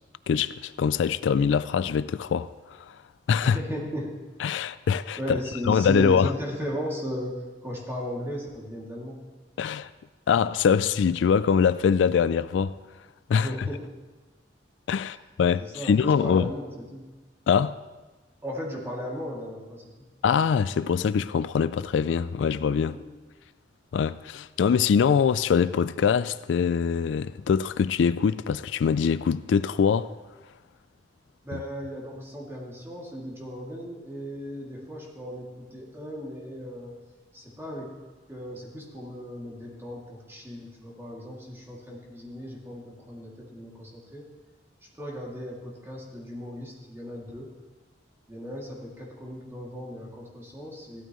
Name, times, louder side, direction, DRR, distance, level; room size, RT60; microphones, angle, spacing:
voice 1, 0.3-3.0 3.3-3.6 4.4-5.2 5.7-6.3 9.6-9.9 10.3-12.8 13.3-13.7 14.9-16.5 17.5-17.7 20.2-23.0 23.9-30.1, left 6 dB, 75° left, 0.3 m, -23 dB
voice 2, 3.4-4.2 5.2-9.2 13.3-13.8 15.6-17.0 18.4-20.1 22.9-23.1 31.4-36.9 37.3-37.9 38.3-44.3 45.0-47.5 48.3-51.0, equal, 15° right, 2.5 m, -36 dB
16.0 x 12.5 x 3.1 m
head